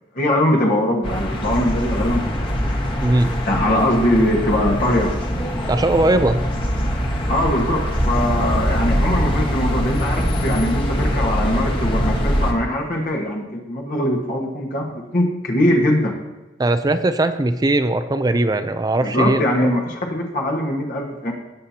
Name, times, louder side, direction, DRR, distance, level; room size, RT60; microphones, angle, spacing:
voice 1, 0.1-2.6 3.5-5.1 7.3-16.1 19.0-21.3, left 1 dB, 45° left, -1 dB, 1.5 m, -21 dB
sound 1, 1.0-12.5, equal, 25° left, 1.4 m, -22 dB
voice 2, 3.0-3.3 5.7-6.4 16.6-19.7, right 2 dB, 20° right, 10 dB, 0.5 m, -19 dB
17.5 x 7.6 x 2.8 m, 1.1 s
head